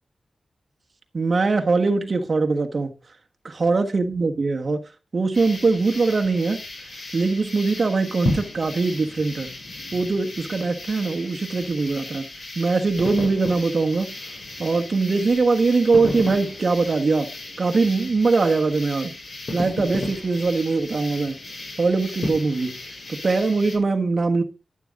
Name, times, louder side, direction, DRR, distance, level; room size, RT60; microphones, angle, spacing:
voice 1, 1.1-2.9 3.6-4.8 5.1-6.6 7.1-9.5 9.9-12.3 12.5-14.1 14.6-17.3 17.6-19.1 19.5-21.4 21.8-22.7 23.1-24.4, right 3 dB, 45° right, 1.4 m, -22 dB
sound 1, 5.3-23.8, left 2 dB, 55° left, 5.9 m, -34 dB
11.5 x 10.5 x 3.7 m
wide cardioid pair, 150°, 0 cm